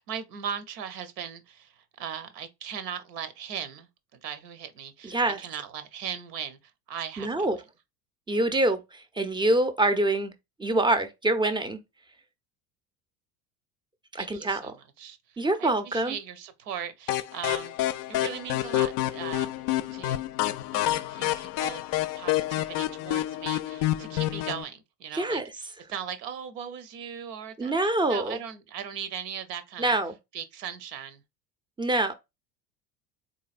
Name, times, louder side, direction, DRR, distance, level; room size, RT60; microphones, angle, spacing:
voice 1, 0.0-6.6 6.9-7.6 14.2-19.6 19.9-20.2 20.7-30.0 30.3-31.2, right 8 dB, 75° right, 0.9 m, -39 dB
voice 2, 5.0-5.4 7.2-7.6 8.3-10.3 10.6-11.8 14.1-14.7 15.4-16.2 25.1-25.5 27.6-28.4 29.8-30.1 31.8-32.1, right 2 dB, 10° right, 0.5 m, -25 dB
sound 1, 17.1-24.6, left 15 dB, 45° left, 0.5 m, -28 dB
3.8 x 3.1 x 2.5 m
hypercardioid pair, 75°, 48 cm